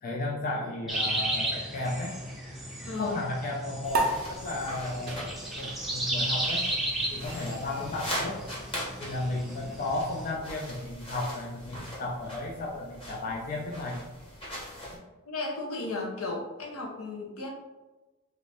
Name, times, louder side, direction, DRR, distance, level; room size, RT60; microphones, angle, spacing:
voice 1, 0.0-2.1 3.0-6.7 7.1-8.4 9.0-14.0 14.8-15.0, left 2 dB, 40° left, -2 dB, 0.4 m, -34 dB
sound 1, 0.9-10.3, right 1 dB, ahead, 0.6 m, -34 dB
voice 2, 2.8-3.2 14.9-15.0 15.3-17.5, left 3 dB, 75° left, 0 dB, 0.8 m, -35 dB
sound 2, 3.8-15.0, equal, 25° left, 1.0 m, -41 dB
sound 3, 3.9-10.7, right 2 dB, 45° right, 0.6 m, -37 dB
3.1 x 2.6 x 3.3 m, 1.2 s
head